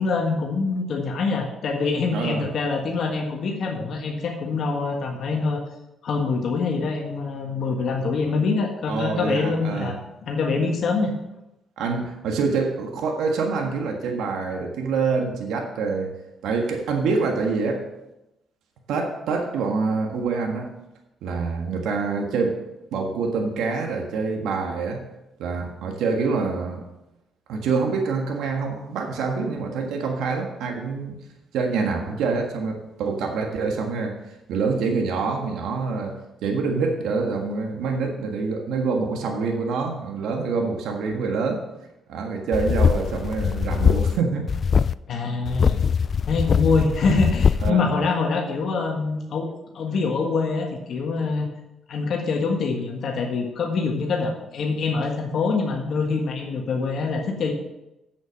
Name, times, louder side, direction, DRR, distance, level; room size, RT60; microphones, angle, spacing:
voice 1, 0.0-5.6 6.0-10.0 10.3-11.1 45.1-45.8 46.3-51.5 51.9-57.5, left 4 dB, 65° left, 1 dB, 1.6 m, -25 dB
voice 2, 2.1-2.5 8.9-9.9 11.8-16.1 16.4-17.8 18.9-20.7 21.2-22.6 22.9-25.0 25.4-26.8 27.5-31.2 31.5-34.2 34.5-36.2 36.4-41.6 42.1-44.5 47.6-47.9, right 4 dB, 85° right, 2 dB, 1.5 m, -26 dB
sound 1, 42.5-44.2 44.5-44.9 45.5-47.7, left 6 dB, 45° left, 0.3 m, -21 dB
8.1 x 7.5 x 6.3 m, 0.93 s
cardioid pair, 90°, 0 cm